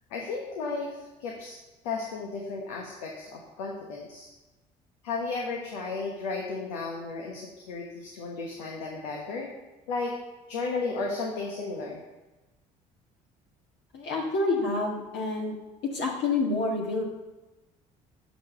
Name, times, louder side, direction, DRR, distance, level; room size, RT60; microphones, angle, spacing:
voice 1, 0.1-1.5 1.8-4.3 5.0-9.5 9.9-10.1 10.5-12.0, left 3 dB, 75° left, -1 dB, 1.3 m, -34 dB
voice 2, 13.9-15.5 15.9-17.0, left 3 dB, 55° left, -1 dB, 1.7 m, -28 dB
7.8 x 5.2 x 6.6 m, 1.1 s
hypercardioid pair, 55°, 21 cm